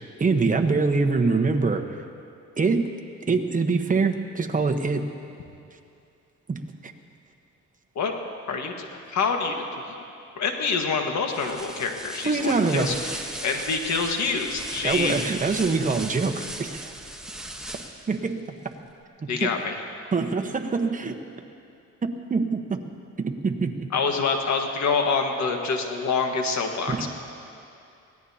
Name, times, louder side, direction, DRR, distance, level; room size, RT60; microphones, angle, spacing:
voice 1, 0.2-1.8 2.6-2.9 3.3-5.0 6.5-6.9 12.2-12.9 13.5-14.0 14.8-16.9 18.1-18.5 19.2-19.5 20.1-21.2 22.0-22.8 23.2-23.9 26.9-27.1, right 4 dB, 25° right, 4 dB, 1.2 m, -24 dB
voice 2, 8.5-9.8 10.4-15.1 19.3-19.7 23.9-27.1, left 4 dB, 65° left, 3 dB, 1.7 m, -26 dB
sound 1, 11.3-18.2, right 1 dB, ahead, 1.2 m, -37 dB
24.0 x 17.5 x 2.9 m, 2.6 s
cardioid pair, 90°, 30 cm